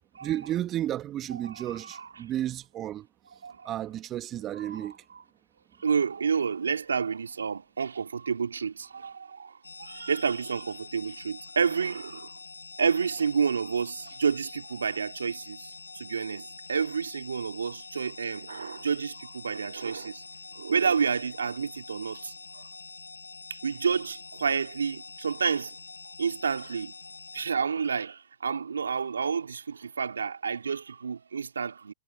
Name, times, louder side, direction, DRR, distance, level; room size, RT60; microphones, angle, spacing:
voice 1, 0.2-3.1 3.6-5.0, right 12 dB, 25° right, 2.3 m, -32 dB
voice 2, 1.4-2.1 3.4-3.7 4.6-5.2 5.8-12.3 12.8-20.2 20.5-22.7 23.5-25.7 26.2-26.9 27.3-31.9, right 6 dB, 80° right, 2.7 m, -30 dB
sound 1, 9.6-27.4, left 4 dB, 90° left, 2.0 m, -46 dB
hypercardioid pair, 115°, 0 cm